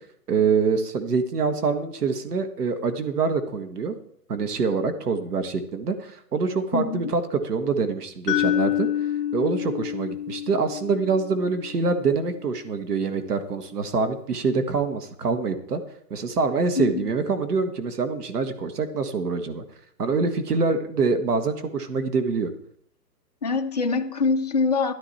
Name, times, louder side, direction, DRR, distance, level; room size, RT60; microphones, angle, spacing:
voice 1, 0.3-4.0 4.3-8.9 9.3-15.8 16.1-19.6 20.0-22.5, right 4 dB, 65° right, 1.8 m, -25 dB
voice 2, 6.7-7.1 16.8-17.1 23.4-24.9, left 4 dB, 25° left, 0.6 m, -24 dB
sound 1, 8.3-12.3, left 11 dB, 50° left, 2.2 m, -28 dB
13.5 x 11.5 x 4.3 m
hypercardioid pair, 160°, 49 cm